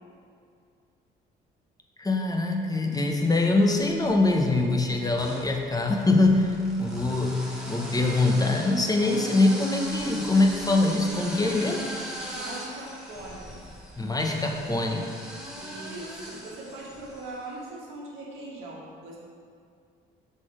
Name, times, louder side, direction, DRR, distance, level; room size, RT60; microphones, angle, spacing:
voice 1, 2.0-11.9 14.0-15.1, left 2 dB, 15° left, 1 dB, 0.9 m, -23 dB
sound 1, 3.8-4.4 5.1-17.4, equal, 5° right, 1.3 m, -39 dB
voice 2, 9.0-9.3 12.3-13.7 15.5-19.2, right 2 dB, 75° right, -3 dB, 1.4 m, -40 dB
6.0 x 4.1 x 5.0 m, 2.3 s
supercardioid pair, 75°, 21 cm